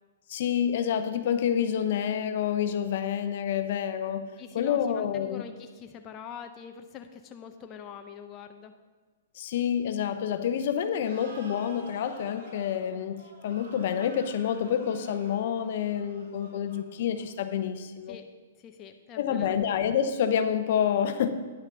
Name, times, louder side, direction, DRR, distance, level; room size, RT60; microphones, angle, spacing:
voice 1, 0.3-4.3 4.5-5.4 9.4-18.2 19.2-21.3, left 8 dB, 60° left, 9 dB, 0.8 m, -28 dB
voice 2, 4.4-8.7 18.1-18.3 18.6-19.6, left 8 dB, 25° left, 5 dB, 0.6 m, -44 dB
sound 1, 11.0-17.5, right 2 dB, 60° right, 2.4 m, -50 dB
9.9 x 5.7 x 6.8 m, 1.4 s
hypercardioid pair, 140°, 0 cm